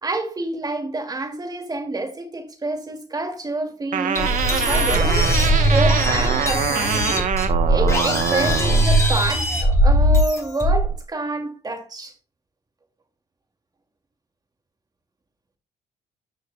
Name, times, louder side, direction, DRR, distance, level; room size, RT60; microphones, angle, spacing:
voice 1, 0.0-5.2 5.7-7.3 7.7-12.1, right 2 dB, 25° right, 2.4 m, -28 dB
sound 1, 3.9-8.9, right 8 dB, 50° right, 1.0 m, -24 dB
sound 2, 4.2-11.0, right 1 dB, 15° left, 2.9 m, -19 dB
13.5 x 6.5 x 2.3 m
cardioid pair, 110°, 17 cm